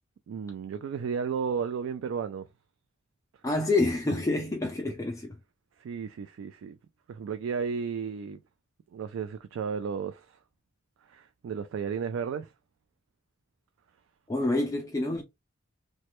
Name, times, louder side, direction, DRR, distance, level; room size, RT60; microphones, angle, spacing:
voice 1, 0.3-2.5 5.8-6.8 7.1-8.4 8.9-10.4 11.1-12.5, right 6 dB, 80° right, 0.3 m, -33 dB
voice 2, 3.4-5.4 14.3-15.2, left 2 dB, 15° left, 0.4 m, -27 dB
3.0 x 2.2 x 3.0 m
head